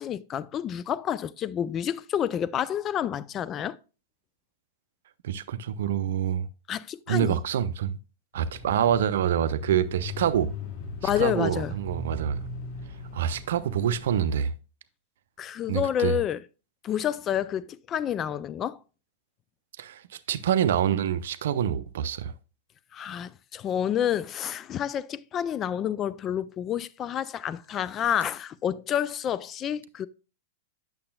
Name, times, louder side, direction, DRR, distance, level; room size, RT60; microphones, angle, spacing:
voice 1, 0.0-3.8 6.7-7.4 11.0-11.8 15.4-16.4 16.8-18.8 22.9-30.1, left 10 dB, 30° left, 0.4 m, -29 dB
voice 2, 5.2-6.5 7.1-8.0 8.3-10.5 11.2-12.4 13.1-14.5 15.7-16.2 19.8-20.0 20.3-22.3, right 9 dB, 65° right, 0.5 m, -26 dB
Bicycle / Mechanisms, 8.3-14.5, left 3 dB, 50° left, 1.2 m, -39 dB
8.5 x 6.7 x 2.2 m
hypercardioid pair, 100°, 0 cm